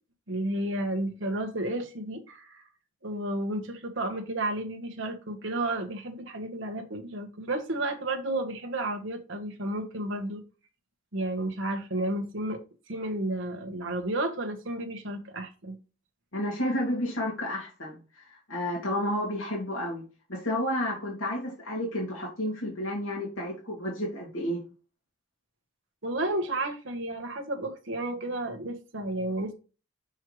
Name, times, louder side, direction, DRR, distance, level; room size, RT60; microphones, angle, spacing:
voice 1, 0.3-2.6 3.0-10.4 11.1-12.6 12.9-15.8 26.0-29.5, right 1 dB, 65° right, 1.4 m, -32 dB
voice 2, 16.3-20.0 20.3-24.6, left 1 dB, 85° left, 2.5 m, -31 dB
6.3 x 5.4 x 3.2 m
head